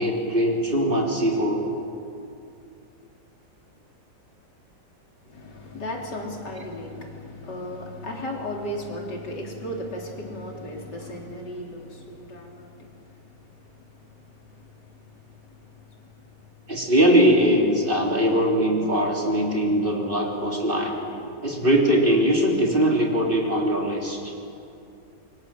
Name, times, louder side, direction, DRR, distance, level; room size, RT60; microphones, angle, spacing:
voice 1, 0.0-1.6 16.7-21.0 21.4-24.3, equal, 30° right, 0 dB, 3.8 m, -21 dB
voice 2, 5.3-16.9 17.8-17.9 21.5-21.6, left 1 dB, 85° left, 0 dB, 4.0 m, -37 dB
27.5 x 23.5 x 7.8 m, 2.6 s
omnidirectional pair, 1.8 m